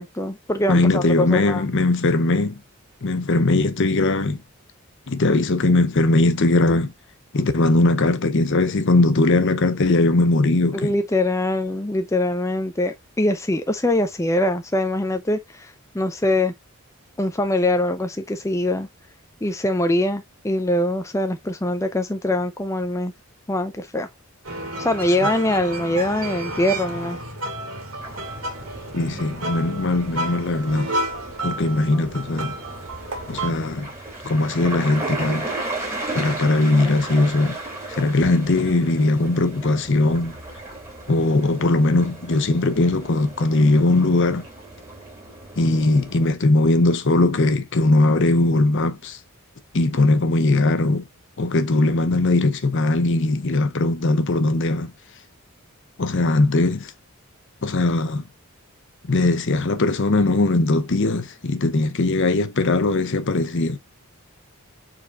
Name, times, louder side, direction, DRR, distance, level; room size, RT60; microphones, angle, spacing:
voice 1, 0.0-1.6 10.7-16.5 17.2-18.9 19.4-23.1 23.5-24.1 24.8-27.2, left 1 dB, 15° left, 0.5 m, -23 dB
voice 2, 0.7-2.6 3.0-4.4 5.1-6.9 7.3-10.9 28.9-30.9 31.4-32.6 33.3-33.9 34.2-35.5 36.1-37.6 37.9-40.4 41.1-44.4 45.6-49.2 49.7-51.0 51.4-54.9 56.0-56.9 57.6-58.2 59.1-63.8, left 2 dB, 55° left, 0.7 m, -20 dB
sound 1, 24.4-33.5, right 1 dB, 65° right, 2.0 m, -31 dB
sound 2, 28.0-46.3, right 2 dB, 15° right, 2.9 m, -35 dB
4.9 x 4.2 x 2.4 m
head